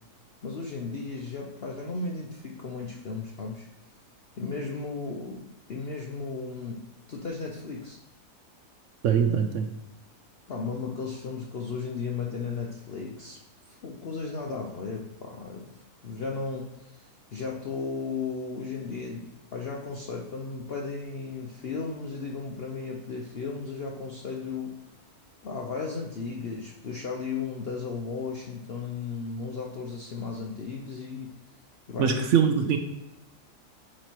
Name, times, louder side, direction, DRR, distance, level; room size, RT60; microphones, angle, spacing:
voice 1, 0.4-3.7 4.4-8.0 10.5-13.4 13.7-15.7 16.0-24.8 25.4-31.4 31.9-32.2, left 4 dB, 55° left, 0 dB, 0.7 m, -35 dB
voice 2, 9.0-9.7 32.0-32.8, right 7 dB, 65° right, 6 dB, 0.7 m, -22 dB
8.7 x 2.9 x 4.5 m, 0.96 s
omnidirectional pair, 1.7 m